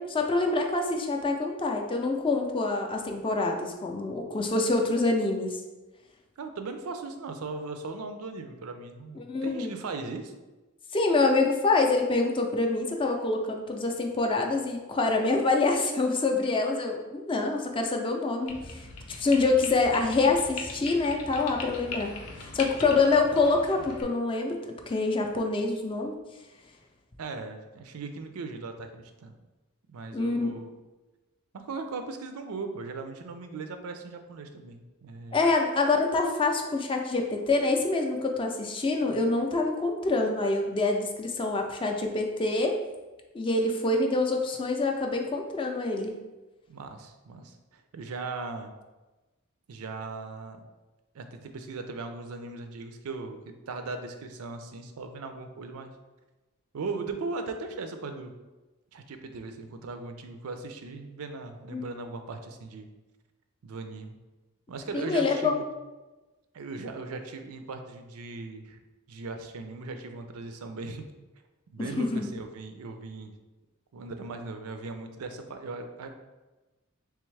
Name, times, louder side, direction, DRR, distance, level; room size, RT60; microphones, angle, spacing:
voice 1, 0.0-5.6 9.2-9.7 10.9-22.1 22.4-26.2 30.1-30.6 35.3-42.8 43.3-46.2 61.7-61.9 64.9-65.6 71.8-72.3, left 3 dB, 25° left, 2 dB, 0.4 m, -26 dB
voice 2, 6.4-10.3 27.2-29.3 29.9-30.8 31.5-35.4 46.7-48.7 49.7-50.6 51.1-55.9 56.7-58.4 58.9-62.9 63.6-64.2 64.7-65.6 66.5-68.8 69.1-71.0 71.7-73.3 73.9-76.1, right 3 dB, 85° right, 7 dB, 0.4 m, -38 dB
sound 1, 18.5-24.0, left 3 dB, 80° left, 0.6 m, -40 dB
3.4 x 3.4 x 3.2 m, 1.1 s
head